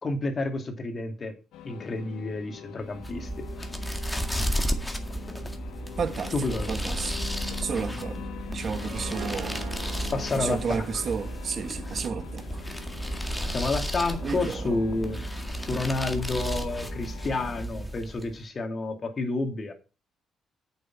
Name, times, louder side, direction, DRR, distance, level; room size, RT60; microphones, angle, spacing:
voice 1, 0.0-1.3 1.6-3.3 3.6-3.7 6.3-6.8 10.1-11.0 13.5-15.2 15.6-19.7, left 3 dB, 40° left, 2.3 m, -30 dB
sound 1, 1.5-17.6, left 10 dB, 85° left, 0.9 m, -43 dB
sound 2, 2.9-18.4, equal, 5° left, 1.9 m, -33 dB
voice 2, 6.0-6.3 6.7-7.2 7.5-9.5 10.4-12.4 14.2-14.8, right 6 dB, 50° right, 1.3 m, -32 dB
Harp, 8.8-13.9, right 10 dB, 65° right, 0.6 m, -44 dB
8.5 x 7.0 x 5.9 m
cardioid pair, 90°, 0 cm